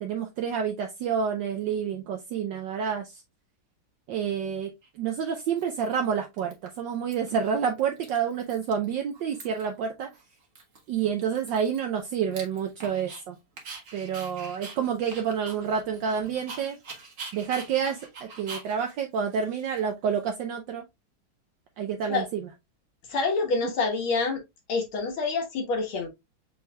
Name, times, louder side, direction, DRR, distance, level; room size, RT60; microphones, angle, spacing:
voice 1, 0.0-3.2 4.1-4.7 5.0-10.1 10.9-13.4 13.9-16.8 17.3-20.8 21.8-22.5, right 7 dB, 70° right, 1.3 m, -29 dB
Dog, 4.8-4.9 5.6-6.1 6.4-7.1 7.4-7.5 7.8-8.9 9.1-9.8 10.1-10.2 10.6-13.2 13.6-20.2, right 4 dB, 45° right, 1.4 m, -44 dB
voice 2, 23.1-24.4 24.7-26.1, left 4 dB, 80° left, 2.2 m, -27 dB
7.0 x 3.2 x 2.2 m
omnidirectional pair, 2.3 m